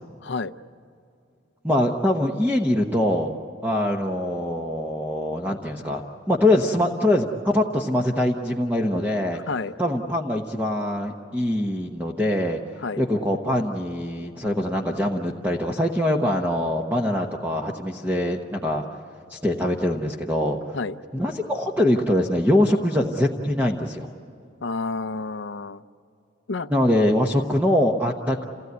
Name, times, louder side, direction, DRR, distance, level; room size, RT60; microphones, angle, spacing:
voice 1, 0.2-0.5 9.3-9.7 12.8-13.0 20.7-21.0 24.6-25.8 26.5-26.7, left 4 dB, 60° left, 12 dB, 0.6 m, -29 dB
voice 2, 1.6-3.4 3.6-6.0 6.3-9.4 9.8-12.6 13.0-18.8 19.3-20.8 21.1-24.1 26.7-28.4, left 1 dB, 10° right, 1 dB, 1.0 m, -23 dB
28.5 x 17.0 x 9.3 m, 2.5 s
head